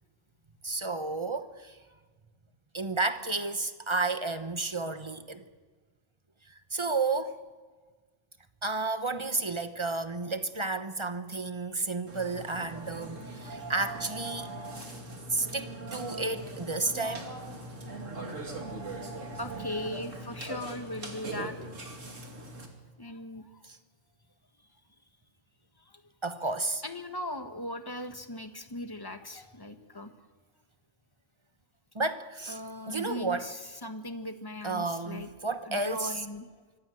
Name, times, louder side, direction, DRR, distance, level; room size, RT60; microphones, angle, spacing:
voice 1, 0.6-1.8 2.7-5.5 6.5-7.4 8.6-14.5 15.3-17.3 23.6-23.8 26.2-26.8 31.9-32.6 32.9-33.5 34.6-36.2, right 3 dB, 25° right, 1.1 m, -32 dB
Burping eructation, 12.1-22.7, right 2 dB, 85° right, 3.0 m, -40 dB
voice 2, 19.3-21.7 23.0-23.6 25.8-26.0 26.8-30.1 32.5-35.3 35.7-36.5, left 1 dB, 20° left, 1.3 m, -39 dB
24.5 x 16.0 x 7.8 m
omnidirectional pair, 1.3 m